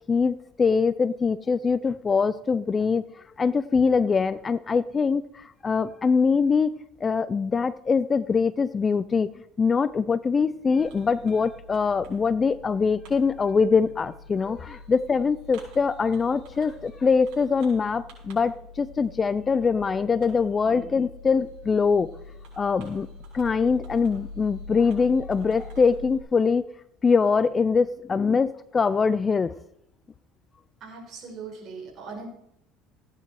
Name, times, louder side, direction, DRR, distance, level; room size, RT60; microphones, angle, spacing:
voice 1, 0.1-3.0 3.4-6.7 7.0-9.3 9.6-22.1 22.6-23.1 23.3-26.6 27.0-29.5, left 5 dB, 25° left, 16 dB, 0.4 m, -23 dB
Fireworks, 10.8-26.2, left 3 dB, 75° right, 6.8 m, -44 dB
voice 2, 30.8-32.3, right 5 dB, 45° right, 0 dB, 5.6 m, -40 dB
16.0 x 9.9 x 4.7 m, 0.76 s
cardioid pair, 135°, 0 cm